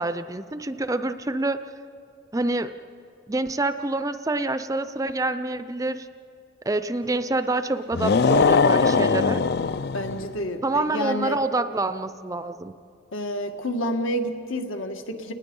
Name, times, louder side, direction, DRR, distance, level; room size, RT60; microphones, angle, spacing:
voice 1, 0.0-1.6 2.3-2.8 3.3-6.1 6.7-9.4 10.6-12.8, right 2 dB, 15° right, 11 dB, 0.5 m, -27 dB
sound 1, 7.9-10.3, left 5 dB, 50° left, 0.4 m, -20 dB
voice 2, 9.9-11.4 13.1-15.3, equal, 75° left, 5 dB, 1.7 m, -29 dB
30.0 x 19.5 x 5.4 m, 2.6 s
head